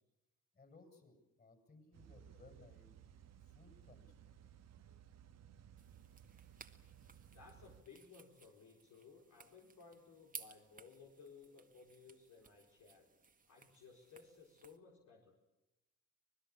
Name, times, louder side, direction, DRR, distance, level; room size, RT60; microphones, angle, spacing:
voice 1, 0.5-2.9 3.4-4.4, left 3 dB, 30° left, 7 dB, 7.4 m, -63 dB
sound 1, 1.9-7.8, right 9 dB, 60° right, 1.4 m, -60 dB
sound 2, 5.8-14.8, right 4 dB, 25° right, 1.9 m, -59 dB
voice 2, 7.3-13.1 13.5-15.3, left 5 dB, 70° left, 0 dB, 4.6 m, -59 dB
25.5 x 20.0 x 8.6 m, 0.92 s
cardioid pair, 90°, 30 cm